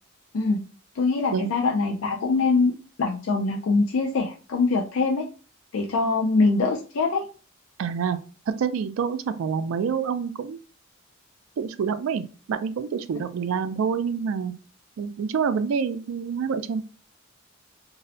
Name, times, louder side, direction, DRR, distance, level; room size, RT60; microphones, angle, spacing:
voice 1, 1.0-2.7 3.0-5.2 5.7-7.2 13.1-13.2, left 3 dB, 80° left, 1 dB, 0.4 m, -23 dB
voice 2, 7.8-8.2 8.6-10.6 11.6-14.5 15.0-16.8, right 6 dB, 85° right, 12 dB, 0.3 m, -27 dB
2.6 x 2.0 x 2.6 m, 0.36 s
head